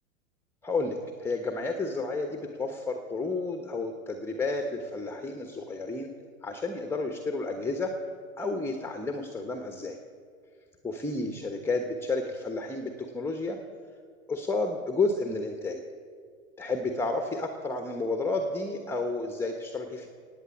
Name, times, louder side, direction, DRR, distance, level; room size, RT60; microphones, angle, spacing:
voice 1, 0.6-6.1 6.4-8.0 8.4-10.0 10.8-13.6 14.3-15.8 16.6-20.1, left 3 dB, 5° left, 5 dB, 1.2 m, -31 dB
18.5 x 9.0 x 7.2 m, 2.1 s
hypercardioid pair, 100°, 42 cm